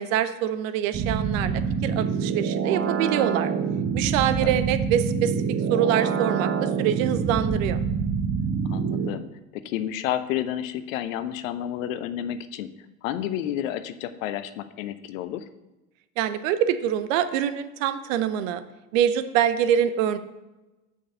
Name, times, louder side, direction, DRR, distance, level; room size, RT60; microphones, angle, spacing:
voice 1, 0.0-3.5 3.9-5.3 5.7-7.8 16.2-18.6 18.9-20.2, right 10 dB, 70° right, 11 dB, 0.9 m, -25 dB
sound 1, 0.9-9.1, right 6 dB, 35° right, 1.0 m, -26 dB
voice 2, 8.7-12.7 13.0-15.5, left 11 dB, 70° left, 12 dB, 0.8 m, -31 dB
6.4 x 5.6 x 6.8 m, 1.0 s
hypercardioid pair, 75°, 41 cm